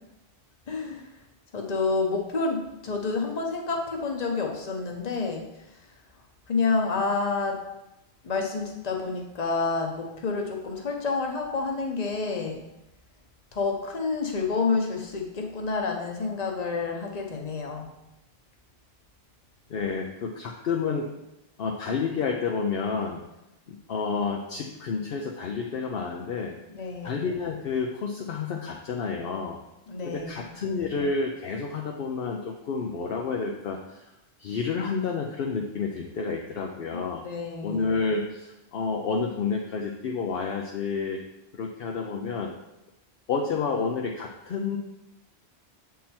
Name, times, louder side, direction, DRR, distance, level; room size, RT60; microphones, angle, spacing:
voice 1, 0.7-1.1 1.5-5.4 6.5-7.6 8.2-12.6 13.5-17.9 26.7-27.2 29.9-30.5 36.9-37.9, left 4 dB, 40° left, 2 dB, 1.0 m, -29 dB
voice 2, 19.7-21.1 21.6-23.2 23.7-26.6 27.0-29.6 30.0-34.1 34.4-37.3 37.6-41.2 41.5-42.5 43.3-44.8, left 5 dB, 65° left, 1 dB, 0.8 m, -30 dB
7.4 x 3.7 x 4.3 m, 0.92 s
omnidirectional pair, 1.0 m